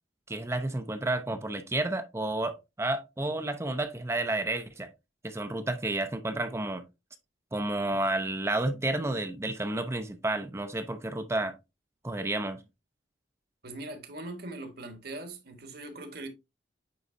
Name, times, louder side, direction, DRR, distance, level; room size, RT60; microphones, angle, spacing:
voice 1, 0.3-4.9 5.2-6.8 7.5-11.5 12.0-12.6, right 2 dB, 15° right, 0.5 m, -31 dB
voice 2, 13.6-16.3, right 2 dB, 55° right, 1.4 m, -41 dB
9.2 x 3.9 x 2.6 m
head